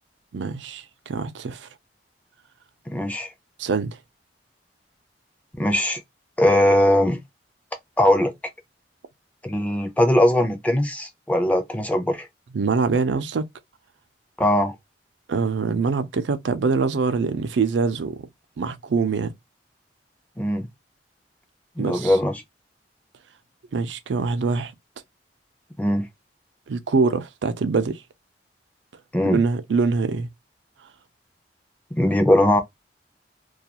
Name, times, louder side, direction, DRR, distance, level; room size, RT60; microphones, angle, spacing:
voice 1, 0.3-1.7 3.6-4.0 12.5-13.5 15.3-18.3 18.6-19.3 21.8-22.2 23.7-24.7 26.7-28.0 29.2-30.3, right 4 dB, 90° right, 0.4 m, -24 dB
voice 2, 2.9-3.3 5.5-6.0 6.4-7.2 8.0-8.3 9.4-12.3 14.4-14.8 20.4-20.7 21.8-22.4 25.8-26.1 29.1-29.4 31.9-32.6, left 1 dB, 10° left, 0.4 m, -20 dB
2.3 x 2.3 x 2.8 m
head